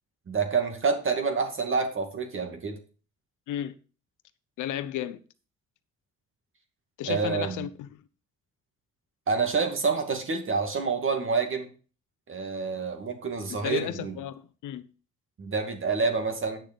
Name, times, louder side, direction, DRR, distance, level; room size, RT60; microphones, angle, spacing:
voice 1, 0.3-2.8 7.1-7.6 9.3-11.7 12.3-14.1 15.4-16.6, right 4 dB, 45° right, 2.4 m, -28 dB
voice 2, 4.6-5.2 7.0-8.0 13.5-14.9, left 11 dB, 80° left, 0.9 m, -33 dB
9.4 x 6.5 x 5.3 m
cardioid pair, 90°, 30 cm